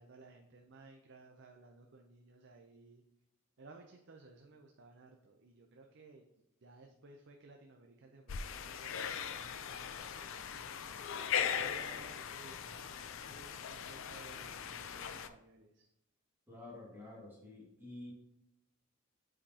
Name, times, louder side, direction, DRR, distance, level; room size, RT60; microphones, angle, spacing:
voice 1, 0.0-3.0 3.6-6.2 6.6-10.5 11.4-12.9 13.2-15.9, right 3 dB, 55° right, 3 dB, 0.6 m, -58 dB
sound 1, 8.3-15.3, left 8 dB, 60° left, 0.5 m, -39 dB
voice 2, 16.5-18.1, left 2 dB, 10° right, -6 dB, 2.0 m, -50 dB
8.5 x 5.1 x 2.8 m, 0.87 s
head